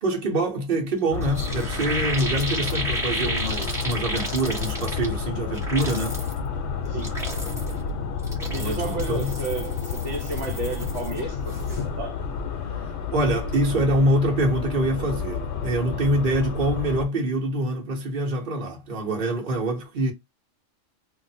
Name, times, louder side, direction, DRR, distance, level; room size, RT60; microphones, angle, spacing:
voice 1, 0.0-6.2 8.5-9.3 12.8-20.1, right 1 dB, 45° right, 1.1 m, -25 dB
sound 1, 0.9-1.0 1.2-5.2 5.5-6.4 6.9-7.8 8.2-11.2 11.5-11.8, right 1 dB, 5° right, 0.8 m, -33 dB
sound 2, 1.1-17.1, left 6 dB, 70° left, 0.8 m, -30 dB
voice 2, 6.9-7.2 8.5-12.2, right 3 dB, 75° right, 1.2 m, -32 dB
2.6 x 2.1 x 4.0 m
omnidirectional pair, 1.3 m